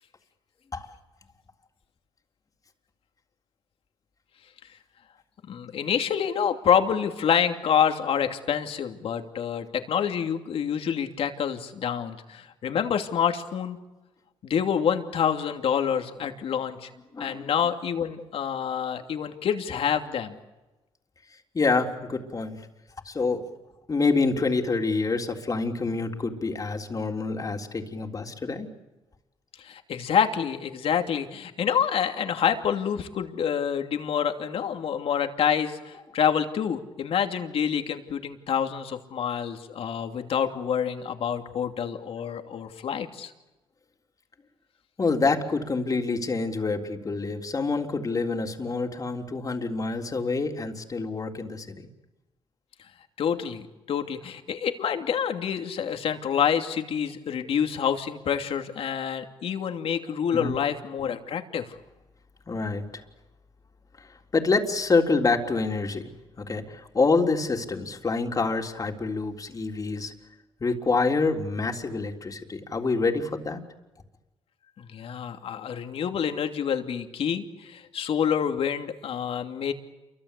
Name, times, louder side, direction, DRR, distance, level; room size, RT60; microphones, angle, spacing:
voice 1, 5.5-13.8 14.4-16.9 17.2-20.4 29.6-43.3 53.2-61.7 74.8-79.7, left 8 dB, 70° left, 6 dB, 2.8 m, -27 dB
voice 2, 17.1-17.5 21.5-22.6 23.1-23.4 23.9-28.7 45.0-51.9 60.3-60.6 62.5-62.9 64.0-64.1 64.3-66.1 66.4-70.1 70.6-73.6, left 3 dB, 35° left, 4 dB, 3.6 m, -27 dB
28.5 x 24.5 x 8.4 m, 1.1 s
cardioid pair, 80°, 10 cm